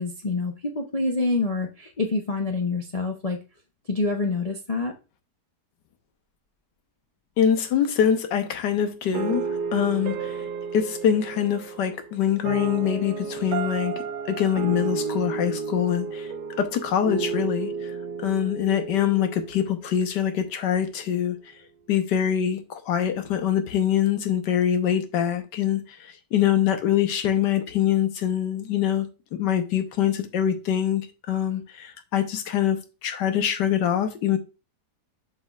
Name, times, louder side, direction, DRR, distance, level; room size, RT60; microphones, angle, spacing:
voice 1, 0.0-3.4 3.9-4.9, left 3 dB, 60° left, 0.4 m, -26 dB
voice 2, 7.4-10.4 10.7-16.3 16.6-17.9 18.2-21.4 21.9-25.8 26.3-34.4, left 9 dB, 85° left, 1.5 m, -24 dB
sound 1, 9.1-20.2, right 5 dB, 85° right, 1.3 m, -32 dB
7.5 x 5.4 x 2.4 m
omnidirectional pair, 1.8 m